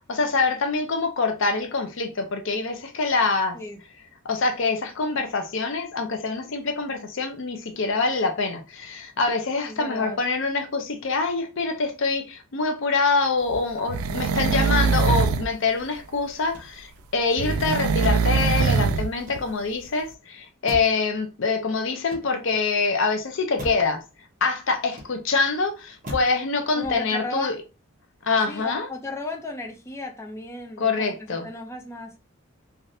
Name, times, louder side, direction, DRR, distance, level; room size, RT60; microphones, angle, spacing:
voice 1, 0.1-3.6 4.2-24.0 24.4-27.6 28.2-28.9 30.8-31.5, left 4 dB, 60° left, 0.5 m, -25 dB
voice 2, 9.7-10.2 17.4-17.7 26.7-27.5 28.5-32.2, left 2 dB, 15° left, 0.4 m, -35 dB
sound 1, 13.5-15.5 17.4-19.1 19.4-19.5, right 5 dB, 85° right, 0.3 m, -22 dB
Motor vehicle (road), 16.4-17.1 18.0-18.4 19.1-19.8 20.7-21.1 21.9-22.7 23.6-23.9 24.8-25.4 26.0-26.4 26.8-27.2, equal, 40° right, 0.9 m, -38 dB
3.3 x 2.5 x 2.6 m
head